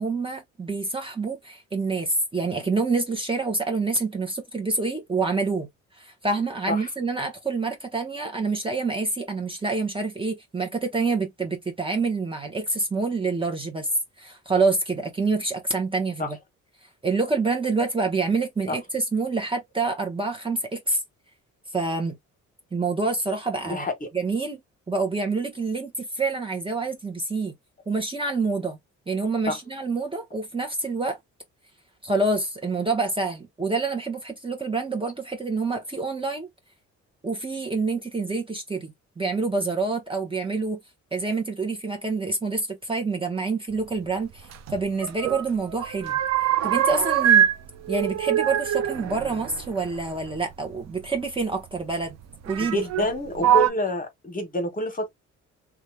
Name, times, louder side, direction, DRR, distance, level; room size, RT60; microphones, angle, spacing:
voice 1, 0.0-5.7 6.0-13.9 14.2-16.4 17.0-21.0 21.7-22.2 22.7-23.9 24.1-24.6 24.9-27.5 27.9-28.8 29.1-31.2 32.0-36.5 37.2-40.8 41.1-46.2 46.6-47.5 47.9-52.2 52.5-52.8, right 3 dB, 15° right, 0.8 m, -27 dB
sound 1, 44.5-45.4 45.7-47.6 47.8-50.3 51.4-51.5 52.5-53.0 53.4-53.7, right 10 dB, 60° right, 0.5 m, -23 dB
voice 2, 52.6-55.1, left 1 dB, 25° left, 1.2 m, -27 dB
2.7 x 2.3 x 3.2 m
cardioid pair, 90°, 30 cm